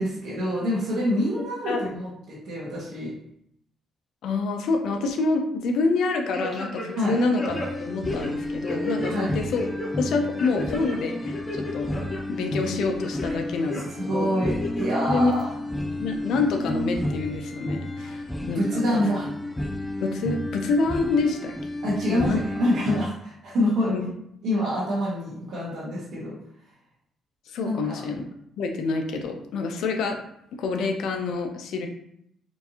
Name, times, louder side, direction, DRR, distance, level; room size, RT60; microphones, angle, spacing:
voice 1, 0.0-3.1 7.0-7.2 9.0-9.3 13.2-15.5 18.0-18.1 18.4-19.3 21.8-22.3 22.6-23.9 24.4-26.3 27.6-28.0, equal, 85° right, -9 dB, 1.3 m, -27 dB
voice 2, 4.2-9.7 10.0-11.9 12.3-13.8 14.1-14.3 15.1-15.3 16.0-19.0 20.0-21.5 22.1-22.4 23.9-24.0 27.5-28.2 28.6-30.2 30.6-31.9, left 3 dB, 80° left, 4 dB, 0.6 m, -27 dB
sound 1, 6.3-7.1 7.4-9.1 9.5-9.9 10.4-11.0 11.3-12.2 12.6-13.3 13.7-13.8 14.4-15.0 15.4-15.5, left 2 dB, 40° left, 1.1 m, -33 dB
sound 2, 7.5-23.1, left 1 dB, 5° left, 0.4 m, -31 dB
4.5 x 2.6 x 2.8 m, 0.73 s
cardioid pair, 90°, 0 cm